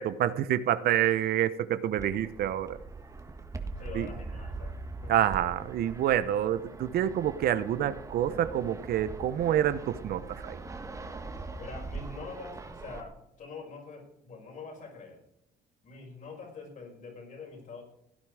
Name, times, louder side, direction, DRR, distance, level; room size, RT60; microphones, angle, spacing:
voice 1, 0.0-2.8 3.9-4.1 5.1-10.6, right 11 dB, 65° right, 14 dB, 0.9 m, -27 dB
Fixed-wing aircraft airplane, 2.0-13.0, right 3 dB, 20° right, 1.6 m, -42 dB
voice 2, 3.8-5.2 11.6-15.2 15.8-17.8, left 4 dB, 50° left, 1 dB, 5.4 m, -45 dB
17.0 x 9.7 x 4.9 m, 0.81 s
cardioid pair, 110°, 17 cm